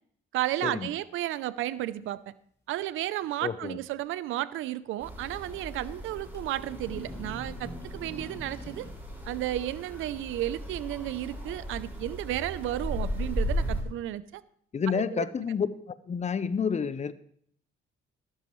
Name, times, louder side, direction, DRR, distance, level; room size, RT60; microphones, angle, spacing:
voice 1, 0.3-2.3 2.7-8.9 9.3-14.4 14.9-15.3, right 14 dB, 85° right, 17 dB, 0.6 m, -33 dB
sound 1, 2.8-2.9 3.2-3.3 4.8-4.9 5.2-5.3 6.2-6.4 6.6-8.9, left 1 dB, 15° left, 6.3 m, -43 dB
voice 2, 3.4-3.8 14.7-15.7 16.1-17.1, left 6 dB, 35° left, 15 dB, 0.7 m, -29 dB
sound 2, 5.0-13.8, equal, 10° right, 5.2 m, -36 dB
14.5 x 12.5 x 3.1 m, 0.64 s
cardioid pair, 90°, 20 cm